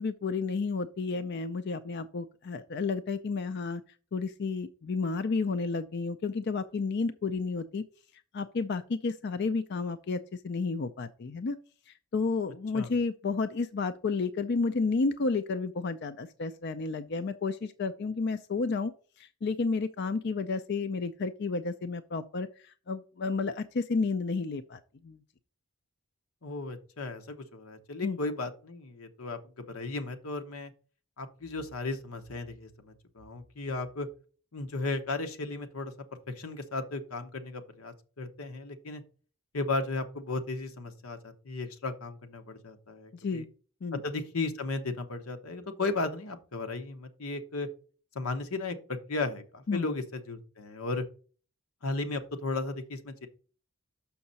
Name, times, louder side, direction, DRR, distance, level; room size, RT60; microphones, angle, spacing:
voice 1, 0.0-3.8 4.1-7.8 8.3-11.6 11.9-18.9 19.2-25.2 28.0-28.2 43.1-43.5 43.8-44.0 49.7-49.9, left 4 dB, 55° left, 10 dB, 0.4 m, -31 dB
voice 2, 26.4-29.4 29.7-30.7 31.2-34.1 34.5-35.9 36.3-39.0 39.5-43.4 44.0-47.7 48.1-51.0 51.8-53.3, left 3 dB, 90° left, 7 dB, 1.0 m, -35 dB
6.4 x 5.8 x 4.0 m, 0.39 s
head